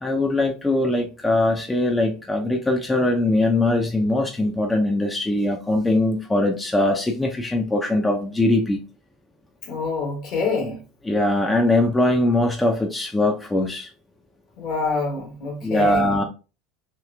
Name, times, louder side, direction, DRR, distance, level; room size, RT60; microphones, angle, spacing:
voice 1, 0.0-8.8 11.0-13.9 15.6-16.2, left 1 dB, 10° left, 0.5 m, -21 dB
voice 2, 9.6-10.8 14.6-16.2, left 4 dB, 55° left, 1.2 m, -26 dB
3.1 x 3.0 x 2.3 m
figure-of-eight pair, 70°, 0 cm